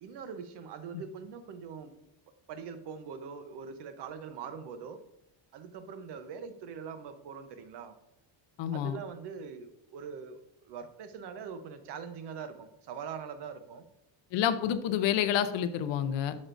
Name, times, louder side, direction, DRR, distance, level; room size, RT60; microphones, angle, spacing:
voice 1, 0.0-1.9 2.5-5.0 5.5-7.9 8.7-13.8, right 6 dB, 55° right, 9 dB, 0.9 m, -42 dB
voice 2, 8.6-9.0 14.3-16.4, left 10 dB, 60° left, 11 dB, 0.7 m, -29 dB
11.0 x 6.4 x 2.6 m, 0.84 s
cardioid pair, 180°, 49 cm